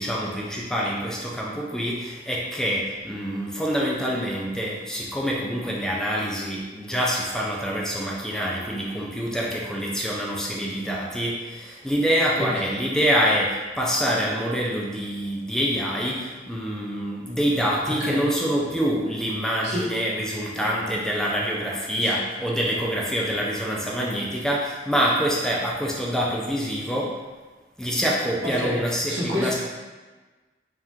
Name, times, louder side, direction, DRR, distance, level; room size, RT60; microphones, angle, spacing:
voice 1, 0.0-27.2 27.8-29.5, equal, 5° left, -4 dB, 0.4 m, -26 dB
voice 2, 28.4-29.6, left 1 dB, 80° right, -7 dB, 1.3 m, -28 dB
4.4 x 2.5 x 3.5 m, 1.3 s
head